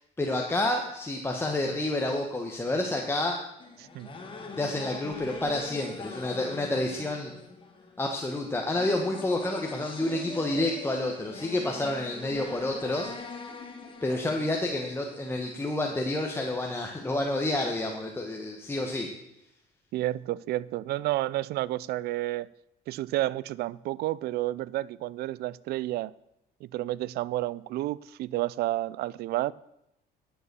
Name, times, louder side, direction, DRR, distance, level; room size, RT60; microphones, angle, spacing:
voice 1, 0.0-3.4 4.6-7.3 8.0-13.1 14.0-19.1, left 1 dB, 15° left, 1.2 m, -29 dB
sound 1, 3.6-15.5, left 4 dB, 30° left, 1.8 m, -42 dB
voice 2, 19.9-22.5 22.9-26.1 26.7-29.5, right 16 dB, 70° right, 0.4 m, -30 dB
11.0 x 6.9 x 6.8 m
cardioid pair, 110°, 17 cm